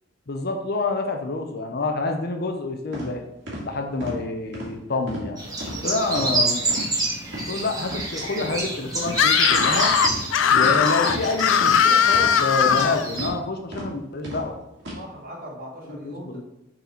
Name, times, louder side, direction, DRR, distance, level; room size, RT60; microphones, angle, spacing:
voice 1, 0.3-3.2 3.6-5.4 5.8-6.6 7.5-9.9 10.5-14.6 15.9-16.4, left 3 dB, 55° left, 4 dB, 0.8 m, -27 dB
sound 1, 2.9-3.1 3.5-3.6 4.0-4.2 4.5-4.7 5.1-5.3 5.6-5.8 6.1-6.3 6.7-6.9 7.3-7.4 7.8-8.0 8.4-8.5 9.0-9.2 9.5-9.7 10.0-10.2 10.6-10.7 11.1-11.2 11.6-11.8 12.1-12.3 12.6-12.8 13.2-13.4 13.7-13.9 14.2-14.4 14.8-15.0, right 1 dB, 70° right, 2.2 m, -33 dB
sound 2, 5.4-13.3, right 2 dB, 20° right, 1.5 m, -28 dB
voice 2, 5.7-6.5 14.9-16.4, equal, 50° right, -2 dB, 1.9 m, -39 dB
Screaming, 9.1-13.1, left 8 dB, 75° left, 0.4 m, -19 dB
6.5 x 4.2 x 4.4 m, 0.85 s
head